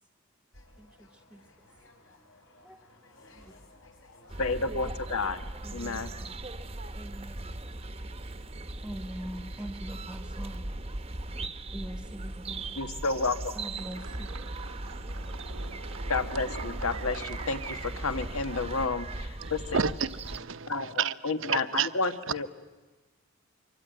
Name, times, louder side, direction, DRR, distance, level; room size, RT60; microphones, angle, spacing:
sound 1, 0.5-6.7, left 2 dB, 65° left, 4.8 m, -58 dB
voice 1, 0.8-3.6 5.6-7.6 8.2-8.4 8.7-10.9 11.3-12.7 13.5-14.3 14.7-15.1 18.4-18.6, right 1 dB, 5° right, 1.1 m, -45 dB
sound 2, 4.3-20.4, right 2 dB, 25° right, 0.9 m, -38 dB
voice 2, 4.4-5.4 5.7-6.1 12.8-13.5 16.1-19.9 20.7-22.5, left 3 dB, 85° left, 1.5 m, -31 dB
sound 3, 13.8-19.2, right 4 dB, 80° right, 1.1 m, -45 dB
voice 3, 19.4-21.1 21.4-21.9, right 6 dB, 65° right, 0.8 m, -30 dB
24.5 x 24.0 x 9.1 m
head